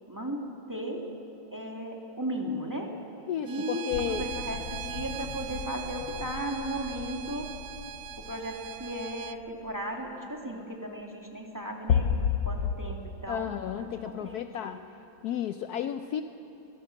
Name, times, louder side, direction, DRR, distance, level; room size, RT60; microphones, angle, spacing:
voice 1, 0.1-1.1 1.5-2.9 3.4-7.5 8.2-12.1 12.4-13.5 13.8-14.8, right 1 dB, 10° right, 0 dB, 2.0 m, -36 dB
voice 2, 3.3-4.3 13.3-14.8 15.2-16.2, left 10 dB, 70° left, 9 dB, 1.0 m, -33 dB
Bowed string instrument, 3.4-9.4, right 11 dB, 70° right, 1.0 m, -41 dB
sound 1, 3.9-9.4 11.9-12.7, left 7 dB, 85° left, 1.5 m, -32 dB
22.5 x 17.0 x 7.5 m, 2.9 s
omnidirectional pair, 1.9 m